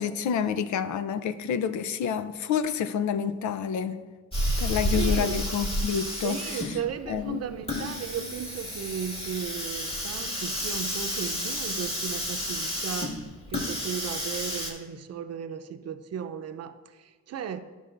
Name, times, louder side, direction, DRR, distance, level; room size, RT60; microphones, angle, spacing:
voice 1, 0.0-4.0 4.6-6.8 7.1-7.4 7.7-8.0, left 7 dB, 70° left, 0.6 m, -29 dB
Hiss, 4.3-14.7, equal, 20° left, 2.1 m, -31 dB
voice 2, 5.0-5.3 6.2-13.2 13.5-17.6, right 8 dB, 55° right, 0.7 m, -35 dB
14.0 x 5.4 x 2.6 m
cardioid pair, 90°, 30 cm